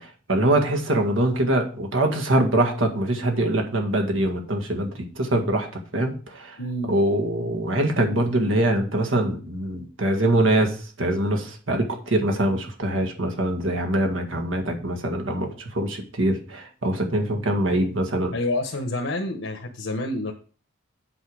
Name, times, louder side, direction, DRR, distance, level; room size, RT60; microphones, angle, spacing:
voice 1, 0.3-5.7 5.9-6.6 6.9-18.3, right 1 dB, 85° right, 4 dB, 1.7 m, -23 dB
voice 2, 6.6-6.9 18.3-20.3, left 1 dB, 75° left, 3 dB, 1.0 m, -28 dB
8.0 x 5.7 x 4.8 m, 0.38 s
head